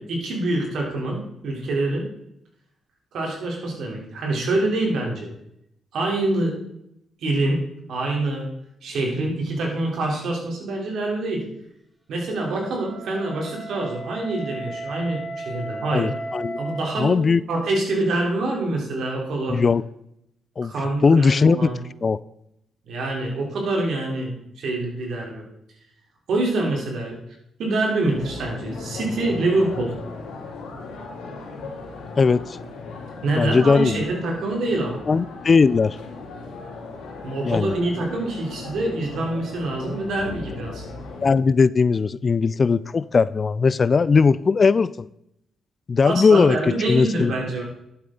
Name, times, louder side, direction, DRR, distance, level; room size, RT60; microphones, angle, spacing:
voice 1, 0.1-2.0 3.1-5.3 5.9-6.6 7.2-7.6 7.9-8.5 8.8-11.4 12.1-16.1 16.6-17.1 17.5-19.6 20.6-21.8 22.8-25.4 26.3-27.2 27.6-29.9 33.2-35.0 37.2-40.8 46.0-47.6, right 2 dB, 75° right, 3.4 m, -25 dB
Wind instrument woodwind instrument, 12.3-17.0, right 2 dB, 5° right, 2.6 m, -35 dB
voice 2, 15.9-16.6 17.0-17.4 19.5-19.8 20.6-20.7 21.0-21.7 22.0-22.2 32.2-32.4 33.4-33.9 35.1-36.0 37.4-37.7 41.2-45.1 45.9-46.6 46.9-47.3, left 5 dB, 45° left, 0.4 m, -18 dB
sound 1, 28.1-41.3, left 3 dB, 80° left, 2.4 m, -37 dB
11.0 x 8.9 x 3.8 m
supercardioid pair, 55°, 0 cm